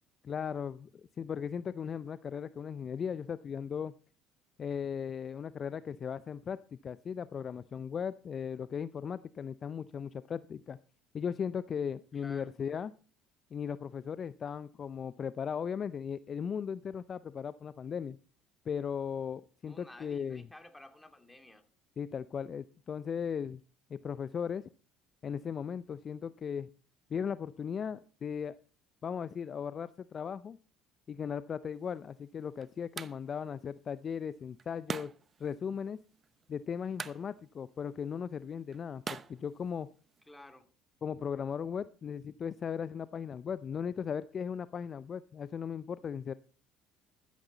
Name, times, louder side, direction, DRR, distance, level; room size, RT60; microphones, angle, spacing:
voice 1, 0.2-0.9 1.2-3.9 4.6-10.8 11.1-12.9 13.5-18.2 18.7-20.5 22.0-23.6 23.9-24.7 25.2-26.7 27.1-28.5 29.0-30.6 31.1-35.1 35.4-36.0 36.5-39.9 41.0-46.3, left 7 dB, 40° left, 0.5 m, -37 dB
voice 2, 12.1-12.5 19.6-21.7 40.3-40.7, left 1 dB, 10° left, 2.5 m, -53 dB
sound 1, 31.7-40.3, right 6 dB, 35° right, 0.8 m, -47 dB
13.5 x 12.5 x 4.0 m
hypercardioid pair, 70°, 0 cm